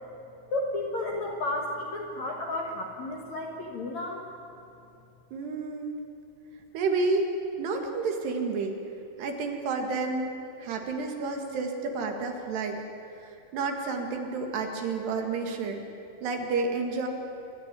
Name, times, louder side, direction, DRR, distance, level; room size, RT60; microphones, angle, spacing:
voice 1, 0.5-4.2, left 2 dB, 60° left, 0 dB, 2.0 m, -32 dB
voice 2, 5.3-6.0 6.7-7.3 7.6-8.8 9.2-12.8 13.2-15.8 16.2-17.1, right 4 dB, 65° right, 3 dB, 3.8 m, -30 dB
26.5 x 13.5 x 9.8 m, 2.9 s
omnidirectional pair, 5.5 m